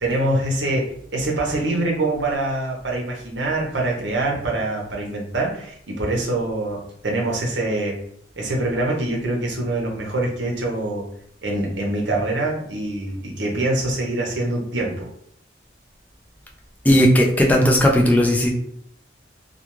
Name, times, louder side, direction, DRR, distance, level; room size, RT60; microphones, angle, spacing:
voice 1, 0.0-8.0 8.4-11.1 11.4-15.1, right 2 dB, 75° right, -1 dB, 0.8 m, -24 dB
voice 2, 16.9-18.5, equal, 10° left, 0 dB, 0.3 m, -16 dB
2.3 x 2.3 x 2.9 m, 0.68 s
head